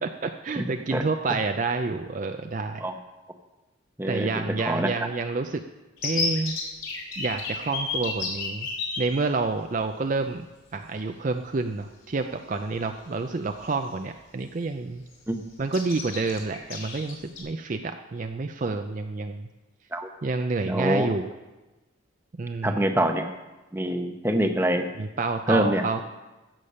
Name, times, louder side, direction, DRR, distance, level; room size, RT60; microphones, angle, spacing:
voice 1, 0.0-2.9 4.1-5.6 6.0-6.6 7.2-8.7 9.0-10.5 10.7-15.0 15.6-19.5 20.2-21.3 22.3-22.9 25.0-26.0, right 3 dB, 40° right, 6 dB, 0.4 m, -29 dB
voice 2, 4.0-4.3 4.6-4.9 15.3-15.4 19.9-20.1 20.7-21.1 22.6-23.3 23.7-24.9 25.5-25.8, right 1 dB, 10° right, 5 dB, 0.8 m, -24 dB
sound 1, 6.0-9.0 10.0-10.1 10.4-10.6 12.2-12.3 12.8-13.0 13.4-14.2 14.5-14.7 14.9-15.3 15.7-17.4, left 5 dB, 75° left, 3.1 m, -32 dB
15.0 x 6.8 x 5.6 m, 1.1 s
head